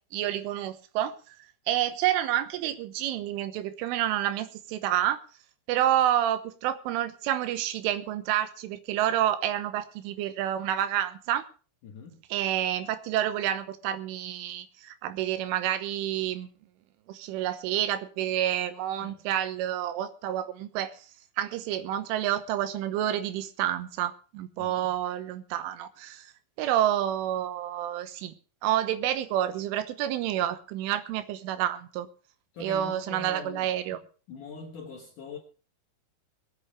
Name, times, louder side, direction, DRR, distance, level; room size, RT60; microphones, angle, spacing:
voice 1, 0.1-1.4 1.7-5.2 5.7-11.4 12.3-16.5 17.1-20.9 21.4-26.3 26.6-28.3 28.6-32.1 32.6-34.0, right 12 dB, 80° right, 3.5 m, -29 dB
voice 2, 11.8-12.2 19.0-19.2 24.6-24.9 32.5-34.0 34.3-35.4, left 4 dB, 65° left, 2.1 m, -43 dB
21.5 x 8.8 x 4.9 m
omnidirectional pair, 5.7 m